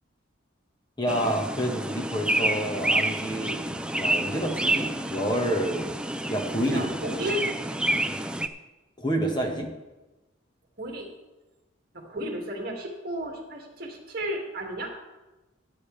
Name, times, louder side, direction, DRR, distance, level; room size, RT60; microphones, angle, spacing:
voice 1, 1.0-5.9 6.3-6.9 9.0-9.7, right 1 dB, 20° left, 1 dB, 1.7 m, -28 dB
sound 1, 1.1-8.5, right 1 dB, 5° right, 0.4 m, -29 dB
voice 2, 6.7-7.4 10.8-11.1 11.9-14.9, equal, 50° right, 0 dB, 2.4 m, -33 dB
15.0 x 9.8 x 3.5 m, 1.1 s
head